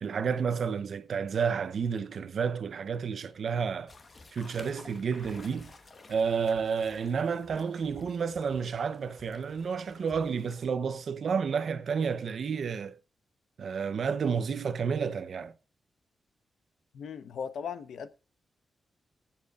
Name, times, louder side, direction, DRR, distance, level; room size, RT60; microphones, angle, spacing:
voice 1, 0.0-3.9 4.3-5.7 6.1-13.0 13.6-15.5, right 6 dB, 55° right, 0.7 m, -30 dB
sound 1, 3.9-10.7, left 3 dB, 30° left, 1.2 m, -53 dB
voice 2, 16.9-18.1, left 7 dB, 80° left, 0.9 m, -37 dB
22.5 x 7.6 x 2.4 m
wide cardioid pair, 155°, 0 cm